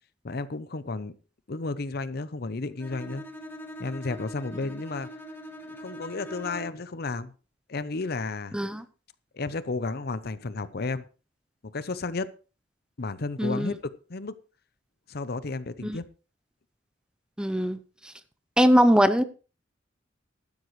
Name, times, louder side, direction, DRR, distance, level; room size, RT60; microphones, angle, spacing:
voice 1, 0.2-1.1 1.5-3.2 3.8-5.1 5.8-7.3 7.7-8.6 9.3-11.0 11.6-12.3 13.0-14.4 15.1-16.1, left 3 dB, 55° left, 0.7 m, -32 dB
Bowed string instrument, 2.8-6.9, equal, 10° left, 1.7 m, -42 dB
voice 2, 8.5-8.8 13.4-13.8 15.8-16.0 17.4-17.8 18.6-19.2, equal, 5° right, 0.7 m, -21 dB
15.0 x 12.0 x 3.2 m
head